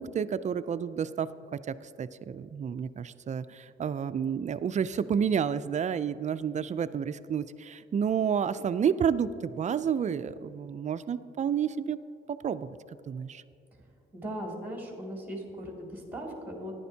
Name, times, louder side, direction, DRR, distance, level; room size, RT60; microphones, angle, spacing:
voice 1, 0.0-12.0 12.3-12.7 13.1-13.4, right 7 dB, 35° right, 14 dB, 0.4 m, -30 dB
voice 2, 14.1-16.7, equal, 10° right, -1 dB, 2.3 m, -38 dB
14.0 x 10.5 x 2.8 m, 2.6 s
cardioid pair, 90°, 20 cm